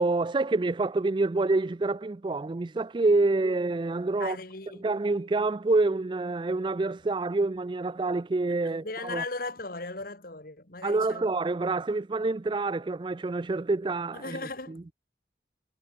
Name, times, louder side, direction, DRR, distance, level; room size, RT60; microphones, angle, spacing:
voice 1, 0.0-4.4 4.8-9.2 10.8-14.4 14.7-14.8, right 3 dB, 25° right, 0.4 m, -27 dB
voice 2, 4.2-4.9 8.7-11.3 14.1-14.9, left 3 dB, 55° left, 3.1 m, -37 dB
head